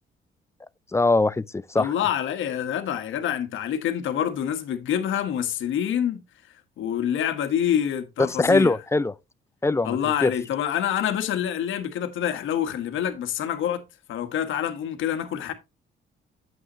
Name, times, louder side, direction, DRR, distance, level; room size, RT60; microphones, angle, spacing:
voice 1, 0.9-1.9 8.3-9.1 9.6-10.3, left 3 dB, 15° left, 0.4 m, -22 dB
voice 2, 1.7-6.2 6.8-8.8 9.8-13.8 14.1-15.5, left 9 dB, 75° left, 1.5 m, -26 dB
8.9 x 7.6 x 3.0 m
cardioid pair, 90°, 20 cm